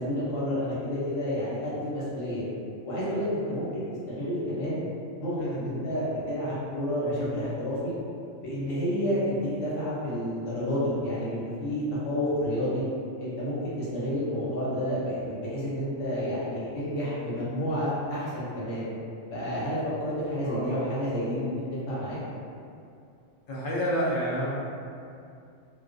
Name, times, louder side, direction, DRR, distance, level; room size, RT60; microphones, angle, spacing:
voice 1, 0.0-2.4 2.8-4.8 5.2-7.9 8.4-12.8 13.2-18.9 19.3-22.2, equal, 85° left, -9 dB, 1.2 m, -30 dB
voice 2, 23.5-24.7, equal, 55° left, -6 dB, 0.6 m, -29 dB
2.3 x 2.2 x 2.5 m, 2.5 s
omnidirectional pair, 1.3 m